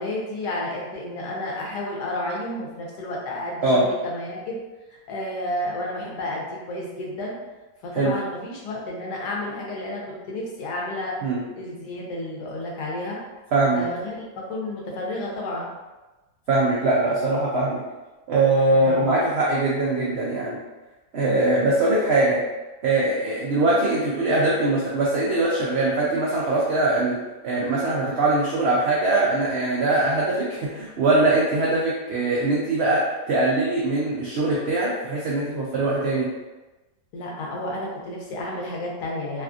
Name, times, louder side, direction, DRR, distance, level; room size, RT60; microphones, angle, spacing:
voice 1, 0.0-4.6 4.9-7.3 7.8-11.2 11.5-13.2 13.7-15.8 18.7-19.0 37.1-39.4, left 1 dB, 80° left, -2 dB, 1.3 m, -31 dB
voice 2, 13.5-13.8 16.5-17.8 18.3-20.6 21.1-22.4 22.8-27.2 27.4-33.0 33.3-36.3, right 2 dB, 80° right, -5 dB, 0.5 m, -22 dB
3.3 x 2.3 x 2.5 m, 1.1 s
omnidirectional pair, 1.7 m